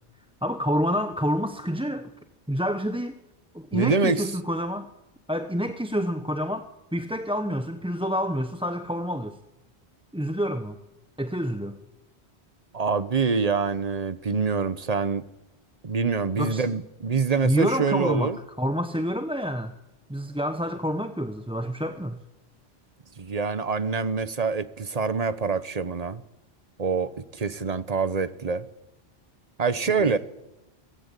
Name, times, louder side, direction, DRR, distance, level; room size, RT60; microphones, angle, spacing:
voice 1, 0.4-2.1 2.5-3.2 3.5-4.9 5.3-6.7 6.9-9.4 10.1-10.8 11.2-11.8 16.4-16.8 17.4-19.8 20.1-22.2 30.0-30.2, equal, 5° right, 0.8 m, -28 dB
voice 2, 3.7-4.3 12.7-15.2 15.8-18.4 23.2-26.2 26.8-28.6 29.6-30.2, right 5 dB, 40° right, 1.1 m, -25 dB
23.5 x 18.0 x 8.4 m
omnidirectional pair, 1.1 m